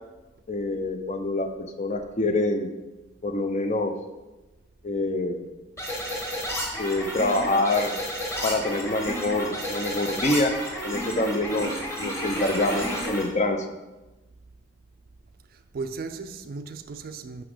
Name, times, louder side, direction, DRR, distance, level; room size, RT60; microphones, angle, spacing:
voice 1, 0.5-2.7 3.2-4.0 4.8-5.5 6.8-8.0 8.4-10.6 10.8-13.7, left 2 dB, 40° left, 0.6 m, -26 dB
sound 1, 5.8-13.2, equal, 15° left, 1.8 m, -31 dB
sound 2, 9.5-10.5 11.2-11.9 12.2-13.0, right 1 dB, 20° right, 0.7 m, -47 dB
voice 2, 15.5-17.4, right 4 dB, 50° right, 0.4 m, -36 dB
5.9 x 5.7 x 4.9 m
head